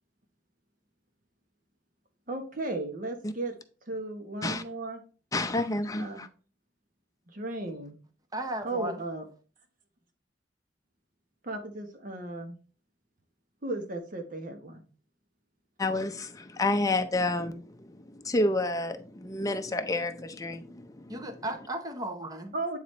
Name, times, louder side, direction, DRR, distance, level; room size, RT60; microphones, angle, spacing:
voice 1, 2.3-3.5 3.8-5.0 6.0-6.2 7.3-8.0 8.6-9.3 11.4-12.6 13.6-14.8 22.5-22.8, right 2 dB, 50° right, 1.1 m, -35 dB
voice 2, 5.3-6.3 15.8-17.6 18.2-20.7, left 2 dB, 20° left, 0.6 m, -29 dB
voice 3, 8.3-9.0 21.1-22.5, right 1 dB, 20° right, 0.8 m, -35 dB
8.8 x 3.9 x 3.2 m
head